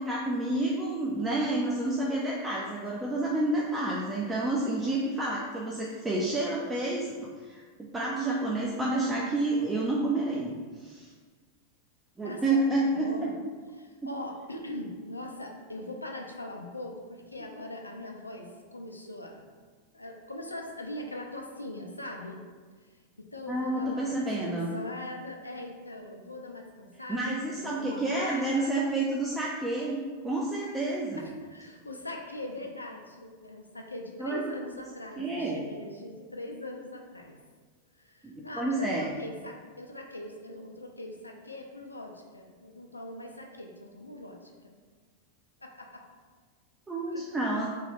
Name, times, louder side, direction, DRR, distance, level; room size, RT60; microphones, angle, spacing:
voice 1, 0.0-7.2 7.4-11.1 12.2-13.3 23.5-24.7 27.1-31.2 34.2-34.4 35.2-35.6 38.2-39.1 46.9-47.7, right 2 dB, 10° right, -4 dB, 0.4 m, -29 dB
voice 2, 12.2-13.3 13.8-19.4 19.9-22.4 22.9-28.8 31.2-37.4 38.0-44.7 45.6-46.1 47.1-47.2, left 1 dB, 85° left, 2 dB, 0.4 m, -41 dB
3.0 x 2.2 x 3.3 m, 1.5 s
figure-of-eight pair, 90°, 0 cm